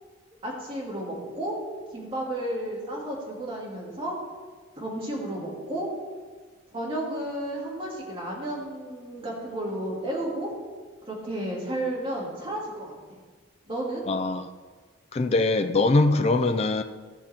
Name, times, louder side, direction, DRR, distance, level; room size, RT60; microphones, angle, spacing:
voice 1, 0.4-1.5 1.9-4.2 4.8-5.9 6.7-10.5 11.1-12.9 13.6-14.0, right 1 dB, 25° right, -4 dB, 2.4 m, -32 dB
voice 2, 14.1-14.5 15.1-16.8, left 3 dB, 30° left, 7 dB, 0.3 m, -22 dB
14.0 x 5.9 x 4.3 m, 1.4 s
head